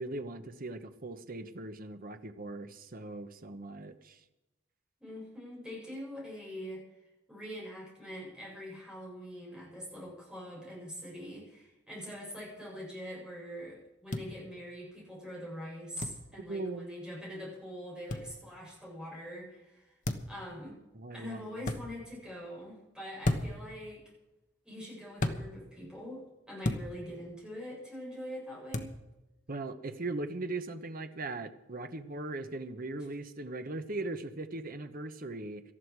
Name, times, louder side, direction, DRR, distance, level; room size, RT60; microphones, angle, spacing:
voice 1, 0.0-4.2 16.5-16.9 20.9-21.4 29.5-35.6, right 2 dB, 50° right, 8 dB, 1.1 m, -39 dB
voice 2, 5.0-6.8 7.3-19.9 20.3-20.8 21.1-24.0 24.6-28.9, equal, 5° right, -4 dB, 7.5 m, -44 dB
sound 1, 14.1-14.3 16.0-16.2 18.1-18.3 20.0-20.4 21.6-21.8 23.2-23.6 25.2-25.4 26.6-26.9 28.7-28.9, left 1 dB, 40° left, 1.3 m, -32 dB
19.0 x 13.0 x 4.8 m, 0.99 s
head